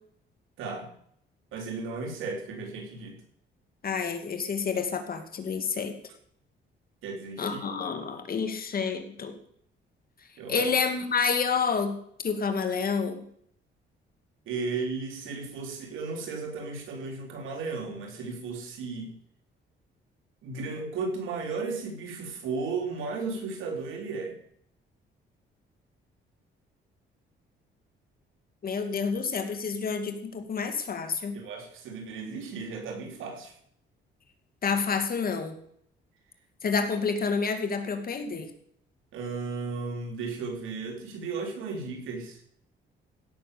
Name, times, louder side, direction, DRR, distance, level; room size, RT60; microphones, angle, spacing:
voice 1, 0.6-0.9 1.5-3.2 7.0-7.6 10.4-10.6 14.5-19.2 20.4-24.3 31.3-33.5 39.1-42.4, right 4 dB, 85° right, 2 dB, 4.0 m, -35 dB
voice 2, 3.8-5.9 7.4-9.4 10.5-12.0 12.2-13.2 28.6-31.4 34.6-35.6 36.6-38.5, left 5 dB, 50° left, 7 dB, 2.4 m, -29 dB
16.5 x 7.0 x 6.9 m, 0.66 s
cardioid pair, 90°, 20 cm